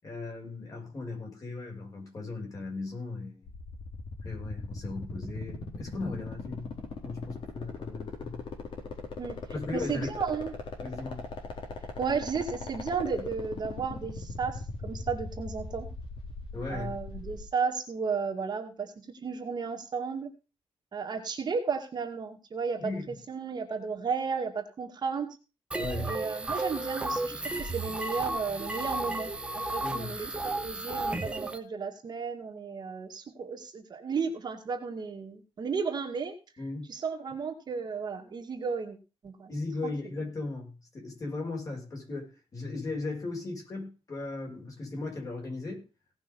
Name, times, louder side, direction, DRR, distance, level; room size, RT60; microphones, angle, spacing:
voice 1, 0.0-3.5 4.2-6.7 7.0-8.4 9.5-10.1 10.8-11.3 16.5-17.0 22.8-23.1 25.7-26.2 29.8-30.1 36.6-36.9 39.5-45.8, left 3 dB, 35° left, 1 dB, 5.8 m, -37 dB
sound 1, 3.5-17.4, left 4 dB, 55° left, 4.5 m, -38 dB
voice 2, 9.7-10.5 12.0-15.9 16.7-20.3 20.9-25.4 26.1-36.3 36.9-39.0 39.2-39.5, right 5 dB, 45° right, 3 dB, 2.3 m, -34 dB
sound 2, 25.7-31.6, right 2 dB, 10° right, 1.3 m, -33 dB
18.0 x 6.0 x 5.4 m, 0.32 s
wide cardioid pair, 165°, 10 cm